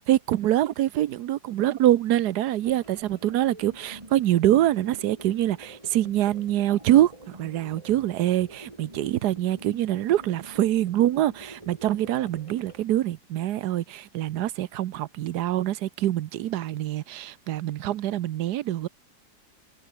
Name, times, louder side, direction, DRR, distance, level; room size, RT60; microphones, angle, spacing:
voice 1, 0.1-7.1 7.4-18.9, right 13 dB, 75° right, 1.3 m, -24 dB
sound 1, 2.6-12.9, right 1 dB, 20° right, 4.6 m, -47 dB
omnidirectional pair, 1.7 m